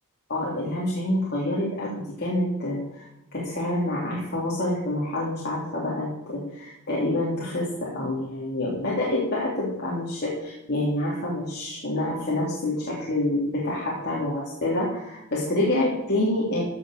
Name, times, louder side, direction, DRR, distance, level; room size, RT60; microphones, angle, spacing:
voice 1, 0.3-3.0 3.3-16.6, left 1 dB, 45° left, -6 dB, 3.1 m, -27 dB
15.0 x 6.3 x 6.6 m, 0.87 s
head